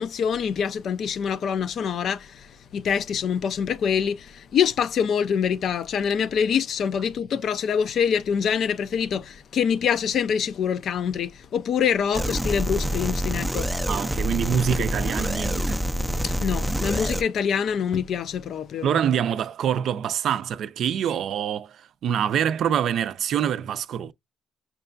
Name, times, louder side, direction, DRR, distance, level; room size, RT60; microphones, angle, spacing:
voice 1, 0.0-2.3 2.7-13.7 16.2-19.0, left 7 dB, 65° left, 0.4 m, -25 dB
sound 1, 12.1-17.2, equal, 5° right, 0.4 m, -26 dB
voice 2, 13.9-15.8 18.8-21.8 22.0-24.1, right 9 dB, 70° right, 0.4 m, -25 dB
5.8 x 2.2 x 2.4 m
cardioid pair, 85°, 0 cm